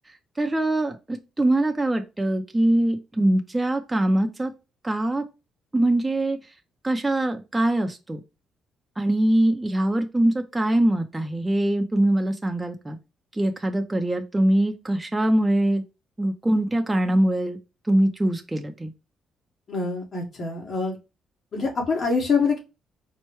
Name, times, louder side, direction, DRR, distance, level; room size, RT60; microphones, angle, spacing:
voice 1, 0.4-4.5 4.8-5.2 5.7-6.4 6.8-8.2 9.0-13.0 13.4-15.8 16.2-17.6 17.9-18.9, right 1 dB, 15° right, 5 dB, 0.6 m, -23 dB
voice 2, 19.7-21.0 21.5-22.6, left 4 dB, 50° left, -2 dB, 1.7 m, -25 dB
4.4 x 2.2 x 3.1 m, 0.27 s
cardioid pair, 90°, 0 cm